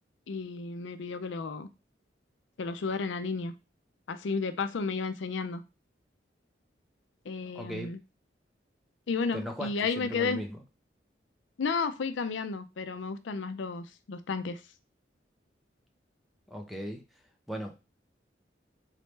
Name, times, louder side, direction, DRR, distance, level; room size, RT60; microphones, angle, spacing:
voice 1, 0.3-1.7 2.6-3.5 4.1-5.6 7.3-8.0 9.1-10.4 11.6-14.6, left 4 dB, 85° left, 10 dB, 0.5 m, -32 dB
voice 2, 7.5-7.9 9.3-10.6 16.5-17.0 17.5-17.8, equal, ahead, 3 dB, 0.6 m, -37 dB
4.0 x 3.2 x 3.2 m, 0.28 s
head